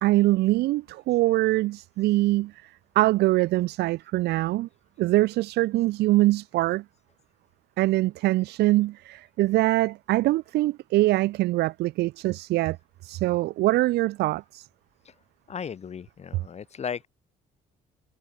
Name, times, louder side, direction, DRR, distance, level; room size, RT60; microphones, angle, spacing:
voice 1, 0.0-2.7 2.9-4.7 5.0-6.8 7.8-12.8 13.0-14.7, right 18 dB, 75° right, 0.8 m, -23 dB
voice 2, 15.5-17.1, left 7 dB, 40° left, 5.6 m, -36 dB
cardioid pair, 110°, 17 cm